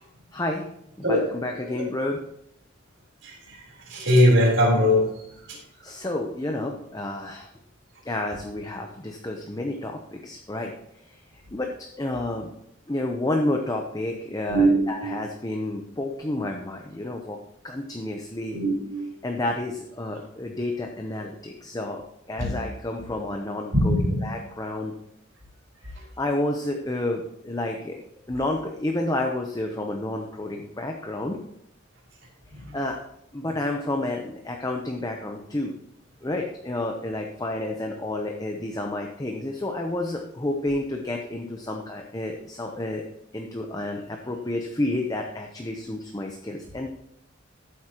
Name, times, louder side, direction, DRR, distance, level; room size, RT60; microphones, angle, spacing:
voice 1, 0.3-0.7 1.0-2.2 5.8-7.5 8.1-10.7 11.0-11.2 11.5-11.7 12.0-12.5 12.9-17.4 17.6-18.6 19.2-22.0 22.3-24.9 25.9-28.0 28.3-31.4 32.7-33.0 33.3-35.7 36.2-43.0 43.3-46.9, left 1 dB, 20° left, 2 dB, 0.7 m, -30 dB
voice 2, 3.9-5.0 14.5-15.2 18.5-19.1 22.4-22.5 23.7-24.2, equal, 65° right, -3 dB, 3.7 m, -20 dB
13.5 x 8.1 x 2.9 m, 0.76 s
head